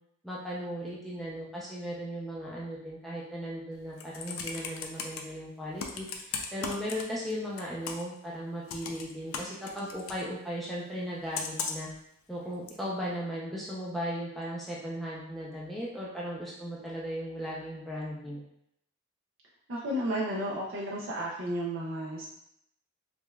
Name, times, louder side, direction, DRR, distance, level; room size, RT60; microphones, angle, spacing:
voice 1, 0.2-6.1 6.5-11.9 12.3-18.4, equal, ahead, -7 dB, 0.5 m, -37 dB
Computer keyboard, 3.8-5.2 5.8-7.3 7.6-8.2 8.7-10.2 11.3-11.9 12.7-12.8, left 5 dB, 75° left, 0.4 m, -37 dB
voice 2, 19.7-22.3, right 1 dB, 60° right, -5 dB, 0.5 m, -32 dB
4.9 x 2.3 x 2.3 m, 0.75 s
head